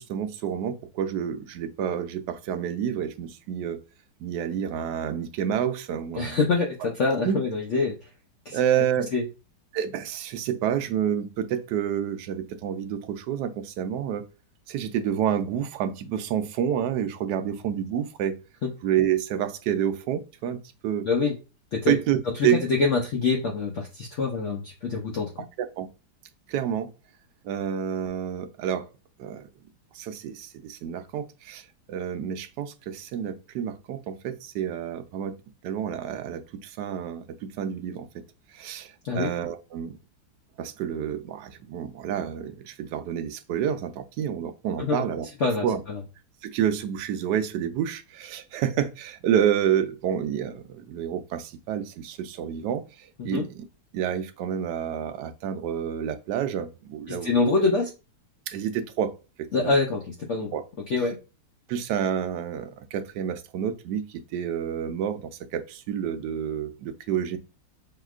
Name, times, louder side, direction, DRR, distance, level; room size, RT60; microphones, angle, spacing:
voice 1, 0.0-3.8 4.2-6.4 7.2-7.4 8.5-9.1 9.7-14.2 14.7-18.4 18.8-21.1 21.9-22.6 25.6-25.9 26.5-26.9 27.4-28.9 29.2-29.5 29.9-35.3 35.6-38.1 38.5-40.0 40.6-45.3 45.6-45.8 46.4-53.6 53.9-57.3 58.5-59.1 59.4-59.7 60.5-60.6 61.7-67.4, right 9 dB, 75° right, 1.0 m, -29 dB
voice 2, 6.2-8.0 8.5-8.6 9.1-9.2 21.0-21.3 21.7-21.9 22.4-25.3 39.0-39.3 44.8-45.0 45.4-46.0 53.2-53.4 57.1-57.9 59.5-60.5 60.9-61.2, left 3 dB, 85° left, 0.6 m, -25 dB
5.6 x 2.8 x 2.4 m
omnidirectional pair, 2.1 m